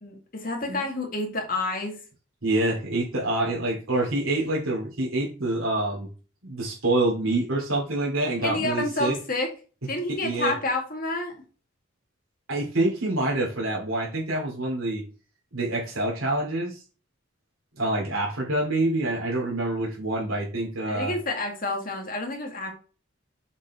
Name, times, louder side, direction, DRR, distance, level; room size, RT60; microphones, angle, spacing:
voice 1, 0.0-2.0 8.4-9.5 9.9-11.3 20.9-22.7, left 2 dB, 40° left, 2 dB, 2.0 m, -29 dB
voice 2, 2.4-6.1 6.4-9.1 10.1-10.5 12.5-15.0 15.5-16.8 17.8-21.1, right 2 dB, 85° right, -3 dB, 2.9 m, -26 dB
7.3 x 4.4 x 4.3 m, 0.35 s
head